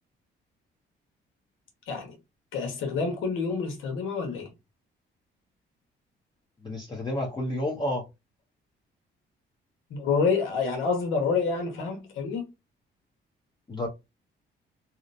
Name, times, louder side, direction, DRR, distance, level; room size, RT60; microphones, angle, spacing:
voice 1, 2.5-4.5 9.9-12.4, left 5 dB, 80° left, 1.1 m, -28 dB
voice 2, 6.6-8.0 13.7-13.9, left 1 dB, 20° left, 0.7 m, -30 dB
2.8 x 2.0 x 2.5 m
cardioid pair, 90°, 20 cm